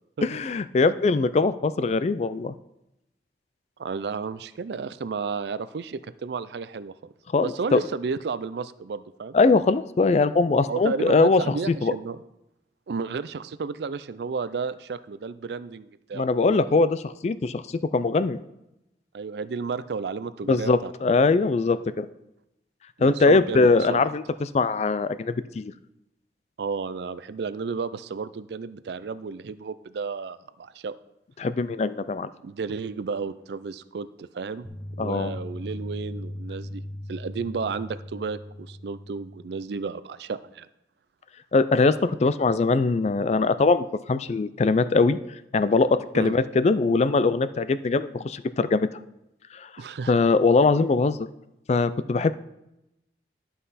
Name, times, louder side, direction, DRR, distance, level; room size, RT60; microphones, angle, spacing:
voice 1, 0.2-2.5 7.3-7.8 9.3-11.9 16.1-17.6 17.9-18.4 20.5-22.1 23.0-25.7 31.4-32.3 35.0-35.3 41.5-45.2 45.5-48.9 49.5-49.7 50.1-51.3 51.7-52.3, left 3 dB, 40° left, 14 dB, 0.3 m, -22 dB
voice 2, 3.8-6.9 7.4-9.4 10.7-12.2 12.9-16.3 19.1-21.2 23.0-24.0 26.6-30.9 32.4-34.7 35.0-36.8 37.1-40.7 46.1-46.4 49.8-50.2, right 5 dB, 70° right, 15 dB, 0.4 m, -32 dB
sound 1, 34.6-39.6, left 1 dB, 15° left, 0.8 m, -38 dB
11.5 x 5.6 x 4.1 m, 0.88 s
head